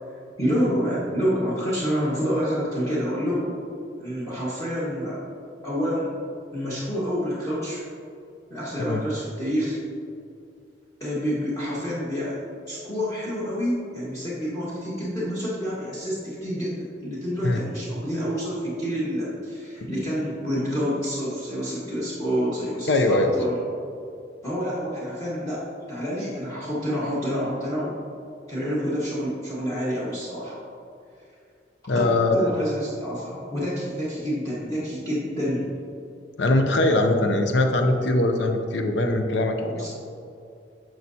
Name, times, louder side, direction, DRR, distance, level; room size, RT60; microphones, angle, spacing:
voice 1, 0.4-3.5 4.0-5.2 5.6-6.1 6.5-7.8 8.5-9.8 11.0-12.4 12.7-23.6 24.4-27.9 28.5-30.6 31.9-35.8 39.7-39.9, equal, 20° left, -9 dB, 1.4 m, -28 dB
voice 2, 22.9-23.3 31.9-32.5 36.4-39.9, left 2 dB, 80° left, 5 dB, 0.6 m, -21 dB
10.5 x 6.4 x 2.8 m, 2.5 s
head